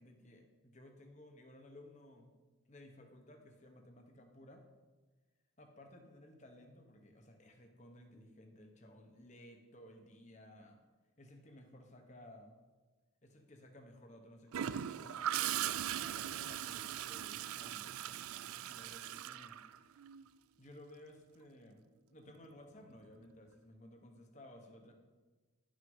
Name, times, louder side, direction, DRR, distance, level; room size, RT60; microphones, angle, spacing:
voice 1, 0.0-2.3 2.7-4.6 5.6-10.8 11.2-12.6 13.2-19.6 20.6-24.9, left 1 dB, 35° left, 3 dB, 1.2 m, -57 dB
Gurgling / Toilet flush, 14.5-20.3 22.3-22.5, right 11 dB, 90° right, 0.4 m, -39 dB
11.0 x 6.5 x 5.6 m, 1.3 s
head